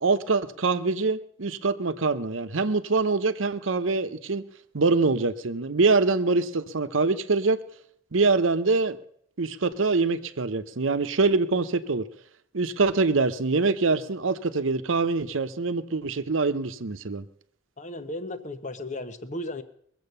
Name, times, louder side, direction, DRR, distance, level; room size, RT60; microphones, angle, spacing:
voice 1, 0.0-4.4 4.7-7.6 8.1-9.0 9.4-12.1 12.5-17.2, right 3 dB, 90° right, 0.8 m, -24 dB
voice 2, 17.8-19.6, left 1 dB, 40° left, 1.1 m, -35 dB
21.5 x 7.8 x 6.7 m
head